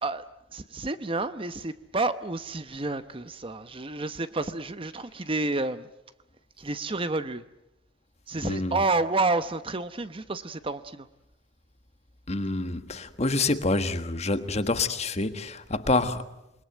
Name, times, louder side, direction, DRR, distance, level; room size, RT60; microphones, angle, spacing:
voice 1, 0.5-5.9 6.6-7.4 8.3-11.1, right 3 dB, 30° right, 0.9 m, -30 dB
voice 2, 8.4-8.8 12.3-16.3, left 2 dB, 35° left, 1.5 m, -27 dB
28.0 x 21.5 x 9.0 m
head